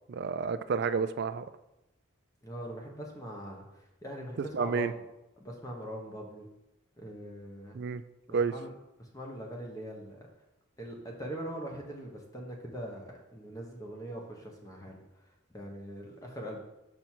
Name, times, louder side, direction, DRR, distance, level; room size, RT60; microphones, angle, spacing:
voice 1, 0.1-1.5 4.6-4.9 7.8-8.0 8.3-8.5, right 5 dB, 50° right, 13 dB, 0.3 m, -30 dB
voice 2, 2.4-5.0 5.4-6.5 7.0-7.8 8.3-8.7 9.0-10.3 10.8-16.6, equal, 15° left, 0 dB, 1.0 m, -42 dB
6.0 x 5.3 x 4.4 m, 0.90 s
head